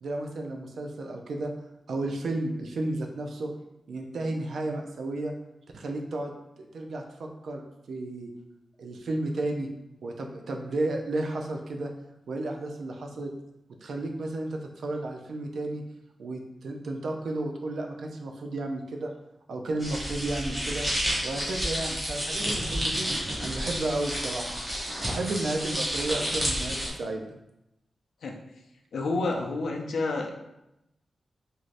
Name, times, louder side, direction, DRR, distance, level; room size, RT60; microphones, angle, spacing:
voice 1, 0.0-1.5 1.9-3.5 3.9-5.3 5.7-8.3 8.8-9.7 10.0-11.9 12.3-13.3 13.8-15.8 16.2-19.1 19.5-20.9 21.2-23.1 23.4-24.6 25.0-27.2, right 2 dB, 70° right, 3 dB, 0.4 m, -33 dB
sound 1, 19.8-26.9, equal, 15° right, 0.7 m, -30 dB
voice 2, 28.9-30.3, left 3 dB, 80° left, 1 dB, 0.4 m, -29 dB
3.2 x 2.6 x 2.5 m, 0.89 s
wide cardioid pair, 170°, 0 cm